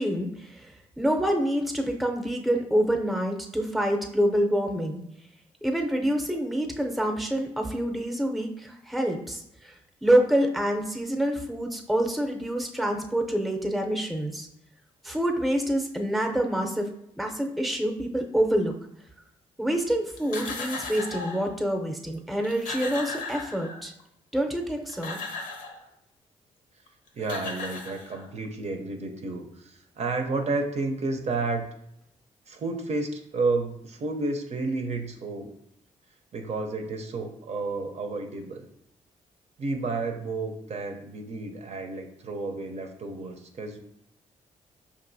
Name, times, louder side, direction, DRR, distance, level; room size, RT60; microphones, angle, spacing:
voice 1, 0.0-5.0 5.6-9.7 10.0-14.5 15.0-16.9 17.2-18.7 19.6-23.9 24.3-25.2, right 1 dB, ahead, 3 dB, 0.6 m, -26 dB
sound 1, 20.2-21.5 22.1-22.2 22.4-24.0 24.7-25.8 26.9-27.0 27.2-28.5, left 3 dB, 85° left, 0.6 m, -36 dB
voice 2, 27.2-31.7 32.5-35.5 36.3-38.7 39.6-43.8, right 3 dB, 50° right, 4 dB, 0.6 m, -31 dB
5.4 x 2.5 x 2.6 m, 0.76 s
supercardioid pair, 60°, 14 cm